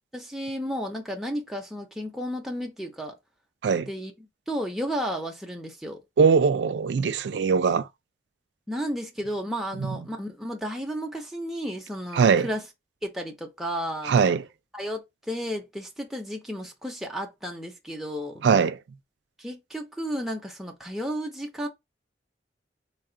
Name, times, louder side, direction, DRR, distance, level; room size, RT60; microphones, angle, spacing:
voice 1, 0.1-3.1 3.9-4.1 4.5-6.0 8.7-12.6 13.0-14.1 14.7-18.4 19.4-21.7, equal, ahead, 0.6 m, -33 dB
voice 2, 6.2-7.9 9.8-10.0 12.1-12.5 14.0-14.4 18.4-18.8, right 5 dB, 70° right, 0.4 m, -21 dB
3.2 x 2.2 x 3.8 m
head